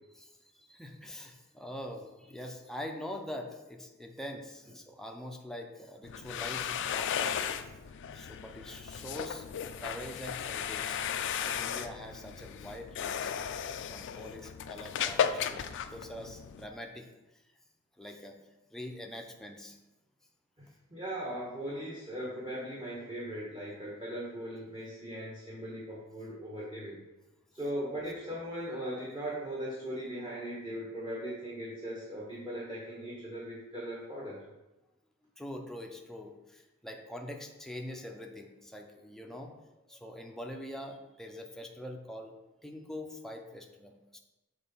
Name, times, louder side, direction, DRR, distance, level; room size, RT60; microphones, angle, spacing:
voice 1, 0.1-7.6 8.1-9.5 9.8-13.3 13.9-17.1 17.3-17.4 18.0-18.4 18.7-19.8 35.4-39.5 39.9-42.3 42.6-44.2, left 1 dB, ahead, 2 dB, 0.6 m, -44 dB
sound 1, 6.0-16.7, left 8 dB, 55° left, 0.4 m, -35 dB
voice 2, 20.6-27.0 27.5-34.4, equal, 20° right, -7 dB, 1.3 m, -39 dB
6.2 x 3.8 x 5.4 m, 1.0 s
head